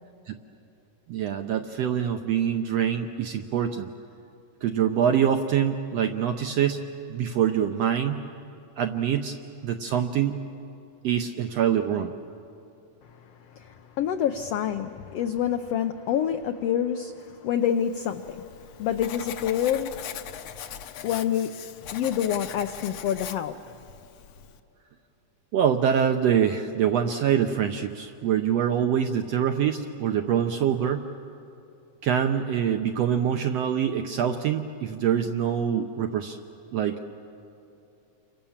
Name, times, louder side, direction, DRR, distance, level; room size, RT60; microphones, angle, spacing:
voice 1, 1.1-3.9 4.6-6.8 7.1-8.2 8.8-9.4 9.6-10.4 11.0-12.1 25.5-31.1 32.0-36.4 36.7-37.0, right 8 dB, 75° right, 1.5 m, -25 dB
voice 2, 13.1-20.6 21.0-21.5 21.9-23.8, left 9 dB, 85° left, 1.4 m, -28 dB
Writing, 17.9-24.6, left 9 dB, 70° left, 1.7 m, -41 dB
29.5 x 24.5 x 7.3 m
omnidirectional pair, 3.8 m